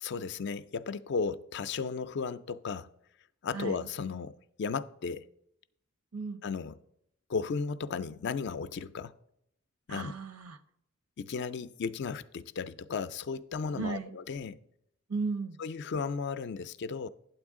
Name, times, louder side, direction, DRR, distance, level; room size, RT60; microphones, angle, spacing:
voice 1, 0.0-2.9 3.4-5.3 6.4-6.8 7.3-9.1 9.9-10.1 11.2-14.6 15.6-17.1, left 5 dB, 50° left, 0.4 m, -35 dB
voice 2, 3.5-3.9 6.1-6.4 9.9-10.6 13.7-14.2 15.1-15.6, right 4 dB, 80° right, 0.7 m, -35 dB
9.2 x 7.8 x 3.6 m
head